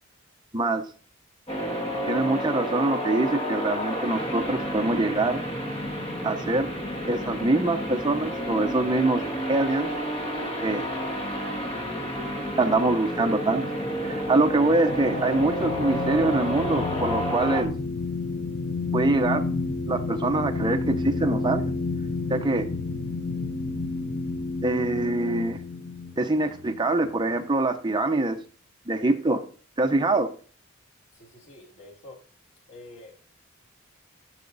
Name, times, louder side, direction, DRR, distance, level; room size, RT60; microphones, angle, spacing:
voice 1, 0.5-0.8 2.1-5.4 6.2-6.7 7.1-9.9 10.6-10.9 12.6-13.6 14.0-17.7 18.9-19.5 19.9-21.7 22.3-22.7 24.6-25.6 26.2-28.4 28.9-29.4 29.8-30.3, right 2 dB, 20° right, 0.8 m, -24 dB
sound 1, 1.5-17.6, equal, 25° left, 1.9 m, -30 dB
sound 2, 13.7-27.4, left 3 dB, 45° left, 0.8 m, -31 dB
voice 2, 31.1-32.2 32.7-33.1, left 2 dB, 75° left, 2.8 m, -47 dB
13.5 x 5.9 x 4.0 m
head